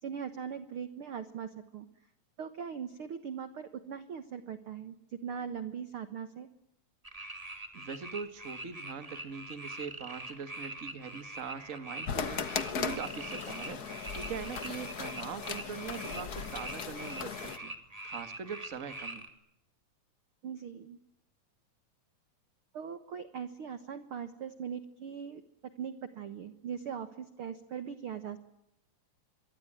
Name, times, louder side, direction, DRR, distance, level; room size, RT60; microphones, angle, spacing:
voice 1, 0.0-1.9 2.4-6.5 20.4-21.0 22.7-28.4, right 7 dB, 55° right, 11 dB, 1.7 m, -40 dB
sound 1, 7.0-19.3, right 1 dB, 10° right, 2.7 m, -44 dB
voice 2, 7.7-12.5 12.8-13.8 14.1-17.7 18.0-19.3, right 6 dB, 30° right, 11 dB, 1.6 m, -42 dB
sound 2, 12.0-17.6, left 6 dB, 70° left, 0.9 m, -38 dB
26.0 x 23.0 x 9.0 m, 0.80 s
omnidirectional pair, 3.9 m